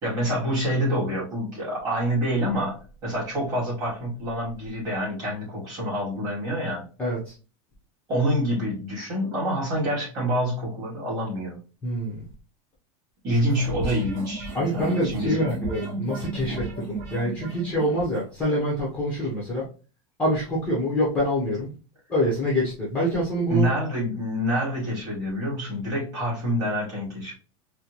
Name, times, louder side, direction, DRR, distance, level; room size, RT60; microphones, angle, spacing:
voice 1, 0.0-6.8 8.1-11.6 13.2-15.5 23.5-27.3, equal, 20° right, -4 dB, 1.9 m, -27 dB
voice 2, 7.0-7.3 11.8-12.2 14.5-19.6 20.2-21.7 22.1-23.7, equal, 10° left, -6 dB, 0.9 m, -26 dB
sound 1, 13.3-18.3, right 2 dB, 50° right, 1.4 m, -34 dB
4.2 x 2.2 x 2.9 m, 0.34 s
supercardioid pair, 175°, 17 cm